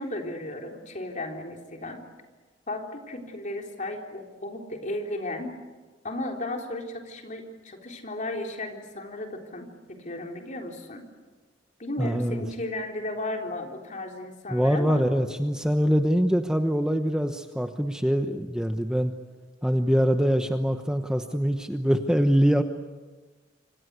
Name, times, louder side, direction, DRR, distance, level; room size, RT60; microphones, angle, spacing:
voice 1, 0.0-2.0 2.7-5.6 6.0-11.1 11.8-15.0, left 1 dB, 40° left, 2 dB, 3.8 m, -34 dB
voice 2, 12.0-12.4 14.5-19.1 19.6-22.6, equal, 5° right, 6 dB, 1.0 m, -24 dB
27.0 x 25.5 x 8.2 m, 1.3 s
head